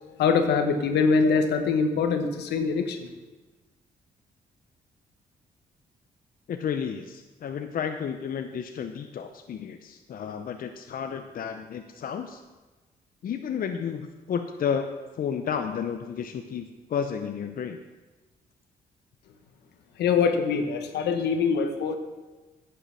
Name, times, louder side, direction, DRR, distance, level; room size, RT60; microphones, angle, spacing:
voice 1, 0.2-3.1 20.0-22.0, left 5 dB, 80° left, 7 dB, 1.1 m, -23 dB
voice 2, 6.5-12.4 13.2-14.9 15.2-17.8, left 7 dB, 60° left, 7 dB, 0.7 m, -32 dB
10.0 x 6.7 x 6.3 m, 1.2 s
supercardioid pair, 65°, 17 cm